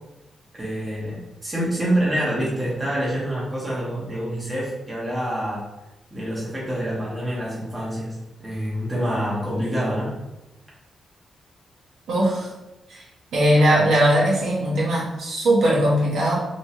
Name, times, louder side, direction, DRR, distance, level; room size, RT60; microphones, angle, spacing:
voice 1, 0.5-1.2 1.4-5.6 6.1-10.1, equal, 15° right, -7 dB, 1.0 m, -26 dB
voice 2, 12.1-12.5 12.9-13.1 13.3-16.3, right 1 dB, 80° right, -5 dB, 1.1 m, -19 dB
3.1 x 3.0 x 2.8 m, 0.98 s
wide cardioid pair, 170°, 0 cm